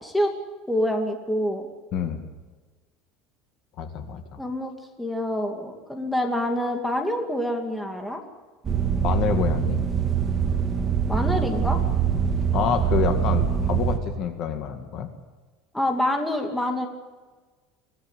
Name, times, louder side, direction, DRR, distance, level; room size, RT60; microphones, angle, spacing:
voice 1, 0.0-0.3 0.7-1.7 4.4-4.7 5.0-8.2 11.1-11.8 15.7-16.9, left 1 dB, 5° left, 3 dB, 2.3 m, -26 dB
voice 2, 1.9-2.3 3.8-4.4 9.0-9.8 12.5-15.1, left 7 dB, 40° left, 7 dB, 2.0 m, -27 dB
sound 1, 8.6-14.0, right 7 dB, 20° right, 1.9 m, -23 dB
25.0 x 17.5 x 8.1 m, 1.3 s
cardioid pair, 175°, 0 cm